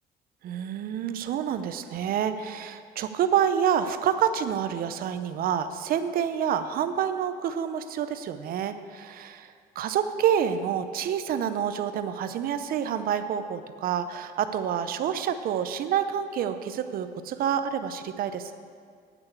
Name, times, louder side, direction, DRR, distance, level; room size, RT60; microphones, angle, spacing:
voice 1, 0.4-18.5, right 9 dB, 60° right, 10 dB, 0.6 m, -28 dB
8.9 x 6.2 x 8.2 m, 2.1 s
cardioid pair, 110°, 17 cm